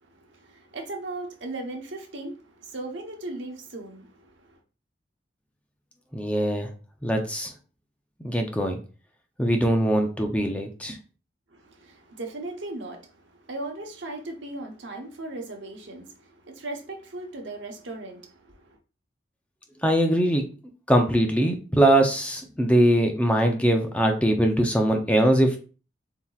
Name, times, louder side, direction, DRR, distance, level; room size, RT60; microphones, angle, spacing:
voice 1, 0.0-4.6 11.5-18.8, right 2 dB, 80° right, 1.1 m, -38 dB
voice 2, 6.1-6.7 7.0-7.5 8.2-8.8 9.4-11.0 19.8-20.4 20.9-25.6, right 1 dB, 5° left, 0.6 m, -22 dB
7.1 x 2.9 x 2.4 m
head